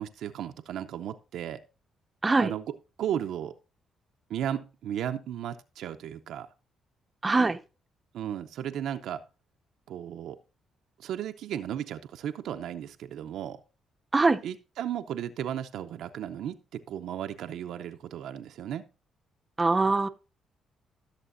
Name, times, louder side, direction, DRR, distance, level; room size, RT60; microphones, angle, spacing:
voice 1, 0.0-1.6 2.4-2.6 3.0-3.5 4.3-6.5 8.1-9.2 9.9-10.4 11.0-13.6 14.4-18.8, right 10 dB, 80° right, 0.6 m, -35 dB
voice 2, 7.2-7.6 14.1-14.4 19.6-20.1, right 3 dB, 25° right, 0.6 m, -22 dB
15.5 x 6.7 x 2.6 m
cardioid pair, 90°, 0 cm